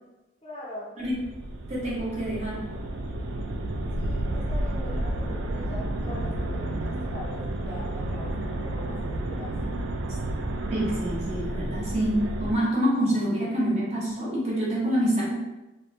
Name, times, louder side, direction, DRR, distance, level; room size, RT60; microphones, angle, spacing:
voice 1, 0.4-0.9 3.9-9.5, left 1 dB, 30° left, -6 dB, 0.5 m, -42 dB
sound 1, 1.0-12.5, right 1 dB, 70° right, 0.3 m, -31 dB
voice 2, 1.7-2.8 10.7-15.4, equal, 35° right, -6 dB, 0.8 m, -26 dB
2.7 x 2.1 x 2.5 m, 1.0 s
head